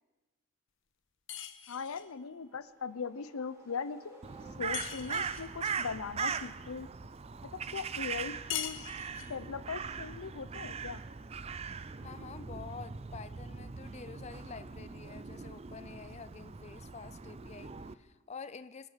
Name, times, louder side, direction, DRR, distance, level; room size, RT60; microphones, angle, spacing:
sound 1, 1.3-2.1 4.7-5.5 8.5-9.4, left 10 dB, 60° left, 1.1 m, -40 dB
voice 1, 1.7-4.2 4.6-6.9 7.4-8.9 9.3-11.0, left 5 dB, 85° left, 16 dB, 0.6 m, -40 dB
sound 2, 2.2-5.1, right 3 dB, 15° right, 2.7 m, -58 dB
Crow, 4.2-17.9, right 5 dB, 30° right, 0.4 m, -40 dB
voice 2, 12.0-18.9, left 5 dB, 30° left, 13 dB, 0.4 m, -48 dB
24.5 x 8.3 x 5.8 m, 1.2 s
head